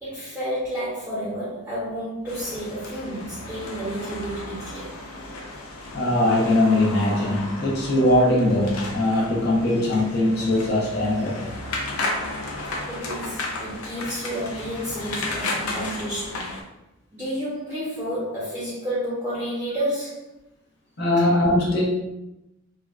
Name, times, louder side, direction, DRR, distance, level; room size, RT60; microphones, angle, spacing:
voice 1, 0.0-5.0 12.9-16.5 17.1-20.3, equal, 10° right, -10 dB, 0.7 m, -30 dB
sound 1, 2.3-16.6, left 2 dB, 85° left, 0.6 m, -34 dB
voice 2, 5.9-11.4 21.0-21.8, left 1 dB, 50° left, -4 dB, 0.8 m, -21 dB
3.5 x 2.3 x 2.4 m, 0.92 s
head